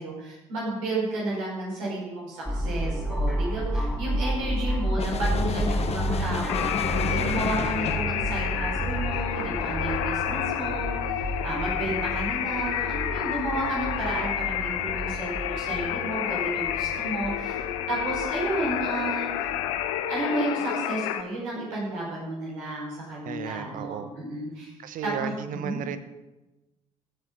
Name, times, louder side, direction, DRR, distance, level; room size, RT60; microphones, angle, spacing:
voice 1, 0.0-10.9 11.4-17.6 17.9-19.5 20.1-24.7 25.0-25.8, right 2 dB, 75° right, -5 dB, 5.2 m, -32 dB
sound 1, 2.5-20.0, equal, 5° right, 2.4 m, -31 dB
sound 2, 5.0-8.1, left 6 dB, 40° left, 1.0 m, -32 dB
sound 3, 6.5-21.2, left 11 dB, 70° left, 0.7 m, -30 dB
voice 2, 7.1-7.5 23.2-24.1 24.8-26.0, right 8 dB, 55° right, 12 dB, 1.0 m, -34 dB
15.5 x 8.1 x 5.4 m, 1.1 s
figure-of-eight pair, 50°, 17 cm